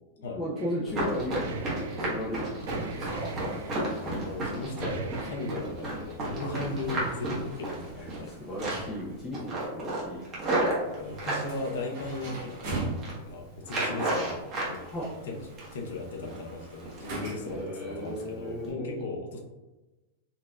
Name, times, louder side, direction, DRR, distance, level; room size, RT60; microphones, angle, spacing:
voice 1, 0.2-3.4 6.4-6.6 8.0-10.3 14.9-15.1 17.5-19.1, equal, 15° left, -5 dB, 0.5 m, -36 dB
sound 1, 0.6-0.8 1.2-2.3 2.6-3.9 4.9-5.7, right 3 dB, 85° right, 0.4 m, -41 dB
Run, 0.9-8.3 8.6-9.0 9.3-11.5 12.0-12.6 12.9-13.2 13.6-14.8 15.1-15.9 16.2-16.4 16.8-17.1 17.5-17.6 18.1-18.2 18.6-18.7, right 1 dB, 25° right, 1.1 m, -32 dB
sound 2, 2.6-17.7, right 2 dB, 50° right, 1.1 m, -42 dB
voice 2, 4.0-8.4 10.9-12.6 13.1-14.9 15.2-19.4, left 2 dB, 85° left, 2 dB, 0.7 m, -37 dB
4.1 x 2.5 x 2.3 m, 1.1 s
supercardioid pair, 155°, 0 cm